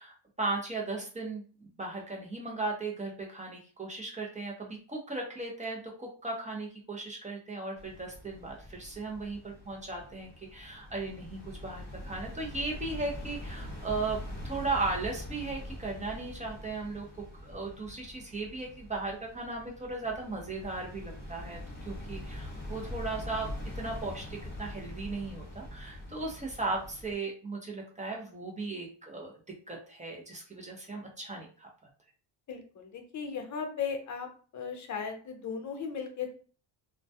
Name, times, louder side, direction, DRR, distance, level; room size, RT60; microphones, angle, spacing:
voice 1, 0.0-23.5 23.8-31.7, right 3 dB, 15° right, -1 dB, 0.5 m, -37 dB
sound 1, 7.8-27.2, left 1 dB, 20° left, 1.1 m, -43 dB
voice 2, 32.5-34.3 34.5-36.3, left 6 dB, 40° left, 4 dB, 0.6 m, -36 dB
2.2 x 2.2 x 2.7 m, 0.40 s
cardioid pair, 110°, 48 cm